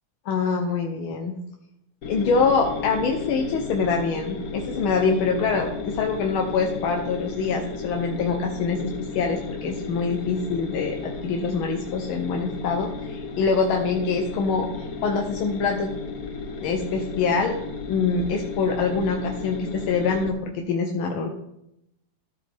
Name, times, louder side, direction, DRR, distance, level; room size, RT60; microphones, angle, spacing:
voice 1, 0.3-1.4 2.1-15.9 16.6-17.6 17.9-21.3, left 4 dB, 85° left, 3 dB, 1.7 m, -25 dB
sound 1, 2.0-20.3, left 4 dB, 50° left, 1.4 m, -34 dB
13.5 x 7.8 x 3.3 m, 0.82 s
omnidirectional pair, 2.2 m